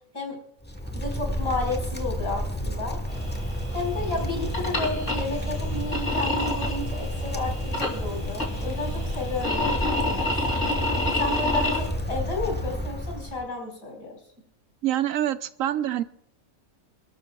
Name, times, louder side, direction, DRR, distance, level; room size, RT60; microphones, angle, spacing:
Wind, 0.6-13.5, equal, 10° left, 1.2 m, -31 dB
voice 1, 0.9-3.0 3.7-10.8 11.2-14.2, left 2 dB, 80° left, 0 dB, 5.2 m, -32 dB
sound 1, 3.1-11.9, left 2 dB, 55° left, 3.8 m, -30 dB
voice 2, 14.8-16.0, right 12 dB, 75° right, 12 dB, 1.1 m, -26 dB
29.0 x 13.0 x 2.4 m, 0.73 s
omnidirectional pair, 1.5 m